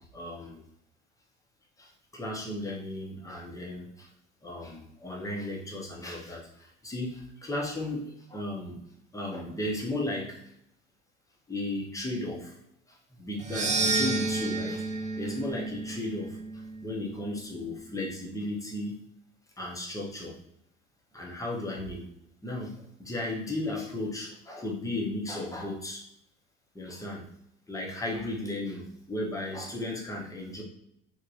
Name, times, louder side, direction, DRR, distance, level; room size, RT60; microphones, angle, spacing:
voice 1, 0.1-0.6 1.8-4.1 4.4-8.8 9.1-10.4 11.5-12.6 12.9-19.0 19.6-20.4 21.1-22.1 22.4-26.1 26.7-27.2 27.7-30.6, left 1 dB, 10° left, -2 dB, 0.7 m, -35 dB
sound 1, 13.4-17.7, right 3 dB, 20° right, 0.5 m, -31 dB
3.2 x 2.1 x 2.6 m, 0.75 s
hypercardioid pair, 65°, 38 cm